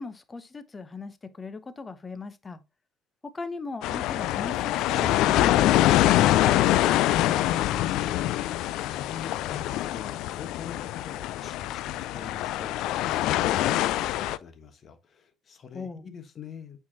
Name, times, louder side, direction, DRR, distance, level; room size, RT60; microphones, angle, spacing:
voice 1, 0.0-2.6 3.2-6.8 15.7-16.0, left 3 dB, 25° left, 0.9 m, -38 dB
sound 1, 3.8-14.4, left 14 dB, 60° left, 0.3 m, -24 dB
voice 2, 7.5-16.8, left 7 dB, 40° left, 1.2 m, -45 dB
8.4 x 4.7 x 2.8 m
figure-of-eight pair, 55°, 0 cm